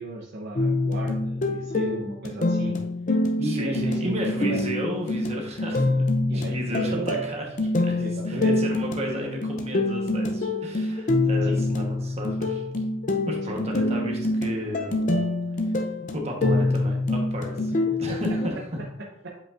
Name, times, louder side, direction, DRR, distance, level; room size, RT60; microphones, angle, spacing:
voice 1, 0.0-2.8 3.4-4.6 6.3-7.2 8.0-8.6 11.4-11.6 13.5-13.6 17.7-17.8 18.1-18.2, right 1 dB, 55° right, -2 dB, 0.8 m, -33 dB
sound 1, 0.6-18.5, left 2 dB, 40° left, 0.5 m, -26 dB
voice 2, 3.4-7.4 7.8-12.6 13.3-15.2 15.6-15.7 16.1-17.7 18.0-18.5, equal, 30° right, 0 dB, 1.2 m, -33 dB
7.8 x 5.2 x 2.5 m, 0.78 s
head